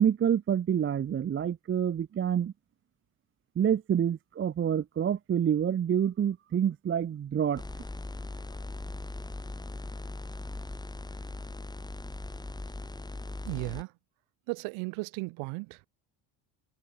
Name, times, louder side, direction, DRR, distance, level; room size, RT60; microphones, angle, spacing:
voice 1, 0.0-2.5 3.6-7.6, right 9 dB, 25° right, 0.6 m, -27 dB
sound 1, 7.6-13.8, left 2 dB, 10° left, 1.8 m, -39 dB
voice 2, 13.4-13.9 14.5-15.9, right 27 dB, 85° right, 1.7 m, -35 dB
cardioid pair, 110°, 48 cm